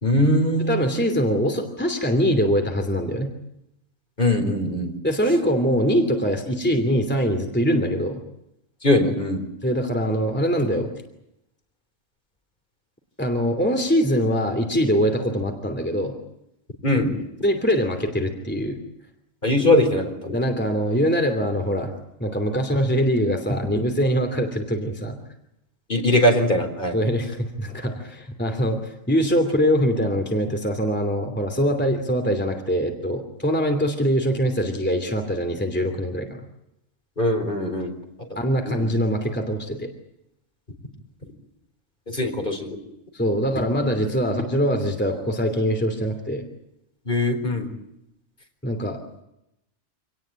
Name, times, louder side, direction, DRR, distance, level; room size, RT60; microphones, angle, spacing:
voice 1, 0.0-1.0 4.2-4.9 8.8-9.4 16.8-17.2 19.4-20.4 25.9-27.0 37.2-37.9 38.6-38.9 42.1-42.8 47.1-47.7, left 1 dB, 40° left, 4 dB, 4.5 m, -21 dB
voice 2, 0.7-3.3 5.0-8.2 9.6-10.9 13.2-16.1 17.4-18.8 20.3-21.9 22.2-25.2 26.9-36.4 38.3-39.9 43.1-46.5 48.6-49.0, equal, 10° left, 4 dB, 2.8 m, -23 dB
27.0 x 18.5 x 9.0 m, 0.85 s
omnidirectional pair, 1.3 m